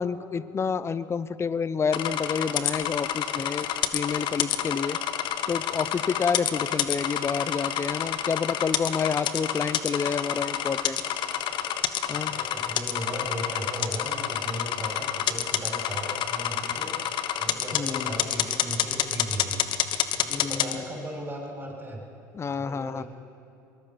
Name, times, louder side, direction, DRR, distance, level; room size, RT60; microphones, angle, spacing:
voice 1, 0.0-3.7 3.9-5.0 5.5-11.0 12.1-12.4 17.7-18.2 20.3-20.8 22.3-23.0, left 6 dB, 25° left, 16 dB, 0.9 m, -29 dB
sound 1, 1.9-20.7, left 10 dB, 50° left, 1.3 m, -28 dB
voice 2, 12.2-16.9 17.4-19.6 20.1-22.0 22.6-23.1, right 1 dB, 20° right, 0 dB, 6.8 m, -37 dB
23.5 x 21.0 x 6.1 m, 2.5 s
hypercardioid pair, 75°, 10 cm